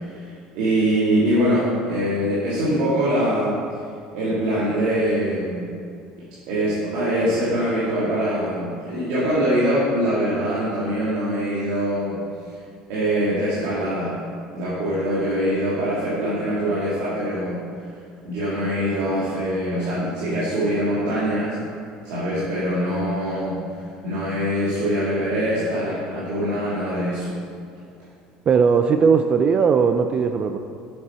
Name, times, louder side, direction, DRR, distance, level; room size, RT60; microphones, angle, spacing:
voice 1, 0.0-3.6 4.1-5.7 6.5-12.2 12.9-14.2 14.5-17.6 18.2-21.6 22.0-27.4, equal, 80° right, -10 dB, 2.0 m, -23 dB
voice 2, 28.5-30.6, right 6 dB, 40° right, 7 dB, 0.4 m, -18 dB
7.4 x 5.9 x 4.3 m, 2.3 s
supercardioid pair, 105°, 3 cm